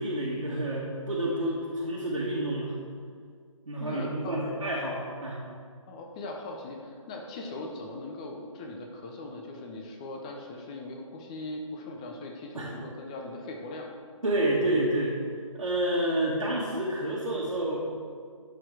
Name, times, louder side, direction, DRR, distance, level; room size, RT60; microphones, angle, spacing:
voice 1, 0.0-2.7 3.7-5.4 12.5-12.7 14.2-15.2 15.5-17.8, right 1 dB, 80° right, -6 dB, 1.8 m, -29 dB
voice 2, 3.8-4.4 5.9-13.9, left 2 dB, 10° left, 2 dB, 0.5 m, -40 dB
13.0 x 4.4 x 4.6 m, 2.1 s
figure-of-eight pair, 145°, 17 cm